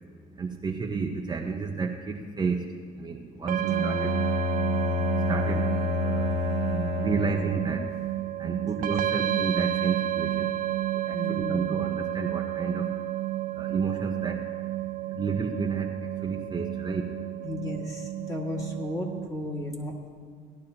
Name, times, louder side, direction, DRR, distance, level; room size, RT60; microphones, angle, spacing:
voice 1, 0.3-2.7 2.9-4.2 5.2-6.4 6.9-7.9 8.4-10.5 10.9-12.9 13.5-14.4 15.1-17.1, right 4 dB, 25° right, 1 dB, 0.8 m, -31 dB
sound 1, 3.5-19.3, right 14 dB, 55° right, 0.4 m, -31 dB
Bowed string instrument, 3.7-7.6, left 6 dB, 75° left, 2.8 m, -29 dB
voice 2, 6.6-7.0 8.6-8.7 11.1-11.6 17.4-20.1, left 1 dB, 20° left, -1 dB, 2.0 m, -34 dB
17.5 x 11.5 x 2.9 m, 2.1 s
cardioid pair, 110°, 17 cm